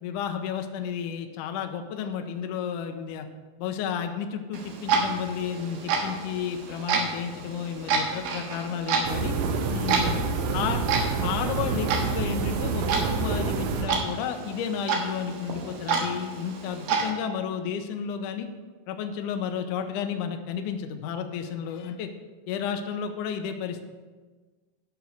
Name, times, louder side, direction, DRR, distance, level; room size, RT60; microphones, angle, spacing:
voice 1, 0.0-3.3 3.6-9.4 9.7-10.2 10.5-10.8 11.2-18.5 18.9-22.1 22.5-23.8, left 7 dB, 75° left, 6 dB, 2.0 m, -32 dB
Clock, 4.5-17.1, right 5 dB, 90° right, 3.2 m, -30 dB
sound 1, 9.0-14.0, right 4 dB, 75° right, 1.8 m, -28 dB
11.5 x 6.2 x 6.4 m, 1.3 s
omnidirectional pair, 4.1 m